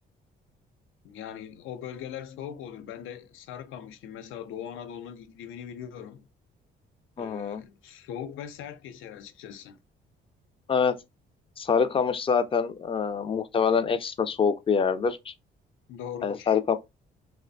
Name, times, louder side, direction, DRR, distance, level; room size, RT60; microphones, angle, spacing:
voice 1, 1.0-6.3 7.2-9.8 15.9-16.6, left 9 dB, 85° left, 0.4 m, -40 dB
voice 2, 7.2-7.6 10.7-10.9 11.6-15.3 16.2-16.8, left 6 dB, 25° left, 0.4 m, -25 dB
2.5 x 2.1 x 2.5 m
cardioid pair, 90°, 20 cm